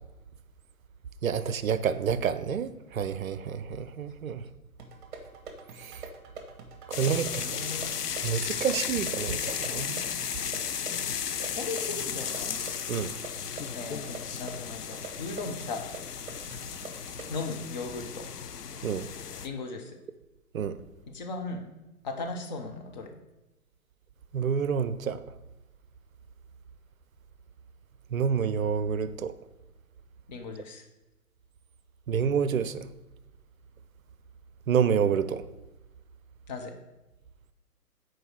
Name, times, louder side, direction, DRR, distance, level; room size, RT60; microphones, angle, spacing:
voice 1, 1.2-4.4 5.8-6.0 7.0-7.4 8.2-10.0 12.9-13.1 18.8-19.1 20.5-20.8 24.3-25.2 28.1-29.3 32.1-32.9 34.7-35.4, right 7 dB, 65° right, 13 dB, 0.5 m, -28 dB
sound 1, 4.8-17.4, right 4 dB, 35° right, 1.1 m, -46 dB
sound 2, 6.9-19.5, left 7 dB, 85° left, 0.6 m, -35 dB
voice 2, 7.0-7.9 9.3-9.4 9.7-10.0 11.4-12.6 13.7-15.9 17.3-18.3 19.4-20.0 21.1-21.7 22.0-23.1 30.3-30.9 36.5-36.7, left 3 dB, 30° left, 4 dB, 0.7 m, -37 dB
6.3 x 4.6 x 4.5 m, 1.0 s
figure-of-eight pair, 125°, 46 cm